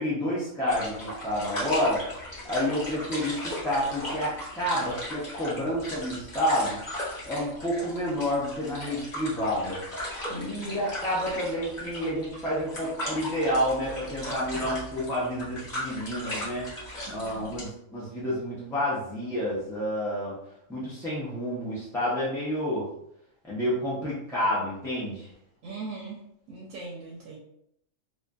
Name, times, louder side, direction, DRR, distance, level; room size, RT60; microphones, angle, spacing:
voice 1, 0.0-2.0 2.5-6.8 7.3-9.8 10.3-16.7 17.1-20.4 20.7-22.9 23.5-25.3, equal, 5° left, -8 dB, 0.3 m, -29 dB
sound 1, 0.7-17.7, left 1 dB, 35° left, 1.0 m, -37 dB
voice 2, 10.3-10.8 17.1-17.6 25.6-26.2 26.5-27.4, right 3 dB, 75° right, -3 dB, 1.0 m, -40 dB
2.5 x 2.5 x 2.3 m, 0.73 s
omnidirectional pair, 1.4 m